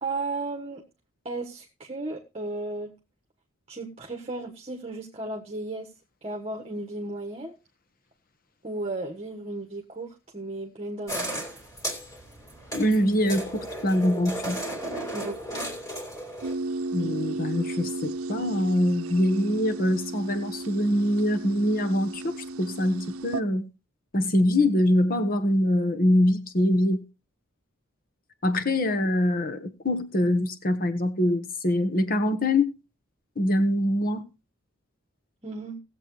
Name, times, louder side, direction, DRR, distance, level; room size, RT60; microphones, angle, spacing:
voice 1, 0.0-0.8 1.2-2.9 3.7-5.9 6.2-7.5 8.6-11.5 15.1-15.7 35.4-35.8, right 2 dB, 30° right, 1.4 m, -34 dB
sound 1, 11.1-16.5, right 1 dB, 15° left, 2.8 m, -35 dB
voice 2, 12.7-14.6 16.9-23.7 24.1-27.0 28.4-32.8 33.4-34.2, left 1 dB, 45° left, 1.3 m, -24 dB
sound 2, 16.4-23.4, right 2 dB, 85° right, 0.7 m, -34 dB
19.0 x 7.6 x 3.2 m
head